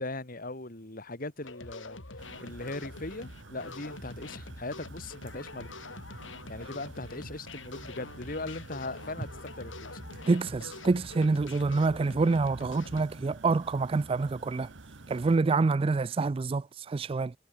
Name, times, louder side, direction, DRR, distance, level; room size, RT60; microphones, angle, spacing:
voice 1, 0.0-2.0 2.4-5.7 6.4-10.0, left 2 dB, 50° left, 2.7 m, -39 dB
sound 1, 1.4-13.0, left 2 dB, 85° left, 4.3 m, -45 dB
sound 2, 2.2-15.4, right 2 dB, 70° right, 1.3 m, -49 dB
voice 2, 10.3-14.7 15.1-17.3, right 3 dB, 30° right, 0.3 m, -27 dB
head